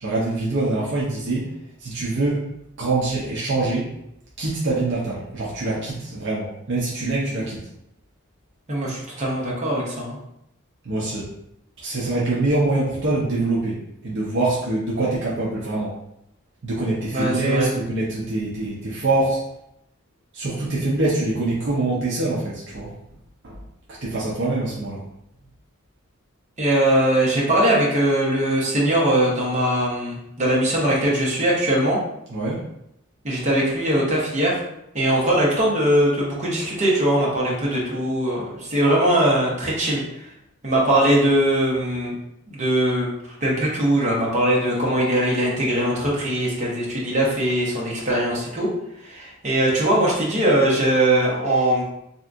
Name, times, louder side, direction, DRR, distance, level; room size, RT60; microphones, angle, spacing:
voice 1, 0.0-1.5 1.8-2.4 2.8-3.9 4.4-7.6 10.8-11.3 11.8-13.8 14.0-16.0 16.6-19.4 20.3-22.9 23.4-23.6 24.0-25.0 32.3-32.6, right 2 dB, 55° right, -6 dB, 0.6 m, -24 dB
voice 2, 8.7-10.2 17.1-17.7 26.6-32.0 33.2-34.6 34.9-40.3 40.6-42.1 42.5-43.1 43.4-48.7 49.0-51.8, right 1 dB, 35° right, -4 dB, 0.9 m, -21 dB
3.4 x 2.7 x 2.5 m, 0.80 s
head